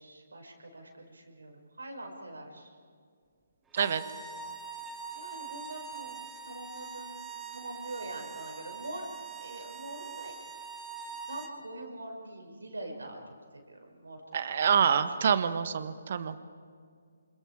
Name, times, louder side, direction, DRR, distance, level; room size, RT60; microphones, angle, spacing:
voice 1, 0.0-2.7 5.1-6.2 6.5-7.2 7.5-9.1 9.4-10.4 11.3-13.2 13.5-14.6, right 1 dB, 75° right, 3 dB, 5.9 m, -43 dB
sound 1, 3.7-11.6, right 5 dB, 10° right, 2.0 m, -43 dB
voice 2, 14.3-16.4, right 7 dB, 45° right, 11 dB, 1.4 m, -26 dB
28.0 x 26.5 x 4.9 m, 2.1 s
figure-of-eight pair, 140°, 0 cm